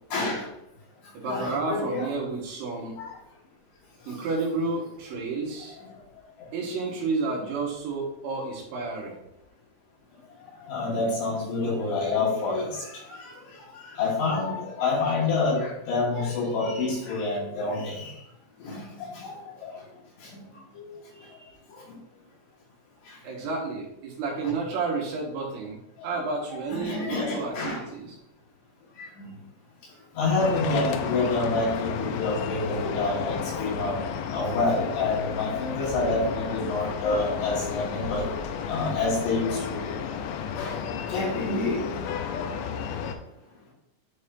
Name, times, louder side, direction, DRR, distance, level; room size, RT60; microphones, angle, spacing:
voice 1, 0.1-0.5 1.3-2.1 3.0-3.2 10.6-13.3 13.8-18.1 18.6-18.8 19.1-19.4 19.6-19.7 24.4-24.5 26.0-26.1 26.5-27.8 29.0-29.3 30.2-34.0 34.3-38.3 38.7-39.9 40.6-40.8 41.1-41.8, left 3 dB, 65° left, -5 dB, 3.5 m, -27 dB
voice 2, 1.1-3.0 4.1-5.8 6.5-9.2 23.2-28.2, right 3 dB, 75° right, -2 dB, 3.5 m, -31 dB
sound 1, 30.4-43.2, left 7 dB, 80° left, 2.7 m, -32 dB
11.5 x 4.1 x 2.6 m, 0.84 s
omnidirectional pair, 5.7 m